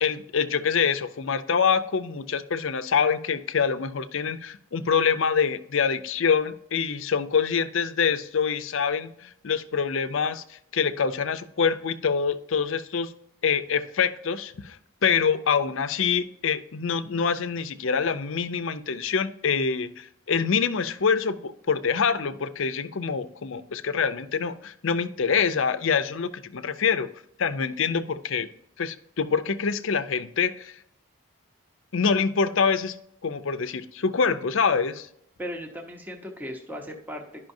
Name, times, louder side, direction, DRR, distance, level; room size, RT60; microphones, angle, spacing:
voice 1, 0.0-13.1 13.4-14.8 15.0-27.1 27.4-28.5 28.8-30.7 31.9-35.1, left 6 dB, 65° left, 11 dB, 0.5 m, -25 dB
voice 2, 35.4-37.5, equal, 10° right, 2 dB, 0.8 m, -37 dB
11.5 x 5.5 x 2.7 m, 0.71 s
head